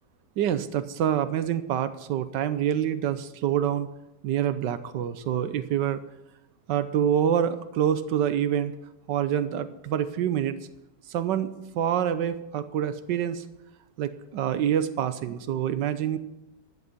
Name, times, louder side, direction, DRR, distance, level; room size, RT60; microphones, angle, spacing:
voice 1, 0.4-3.9 4.2-6.0 6.7-8.7 9.1-10.6 11.1-13.4 14.0-16.2, right 9 dB, 90° right, 12 dB, 1.4 m, -26 dB
14.5 x 11.0 x 5.4 m, 0.89 s
omnidirectional pair, 1.9 m